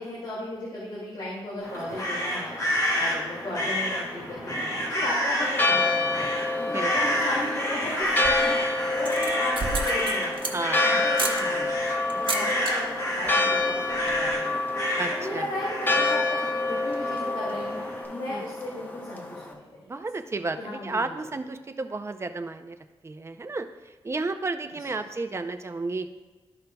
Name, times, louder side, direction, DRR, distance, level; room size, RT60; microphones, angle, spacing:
voice 1, 0.0-2.6 2.9-10.4 10.8-14.8 15.1-19.8 20.6-21.1, left 1 dB, 50° left, -7 dB, 2.3 m, -35 dB
sound 1, 1.6-18.0, equal, 35° left, 2.1 m, -30 dB
Church bell, 5.4-19.5, left 2 dB, 20° left, 0.9 m, -28 dB
voice 2, 6.7-7.1 10.5-10.8 15.0-15.5 18.3-18.5 19.9-20.6 20.8-22.8 23.0-23.7 24.0-26.1, right 3 dB, 30° right, 8 dB, 0.5 m, -32 dB
sound 2, 8.0-8.5 9.0-10.8 11.1-11.4 12.1-12.7 13.0-13.3 13.6-13.7 13.9-14.3, right 4 dB, 60° right, 1.0 m, -32 dB
13.0 x 5.5 x 2.3 m, 1.3 s
wide cardioid pair, 100°, 10 cm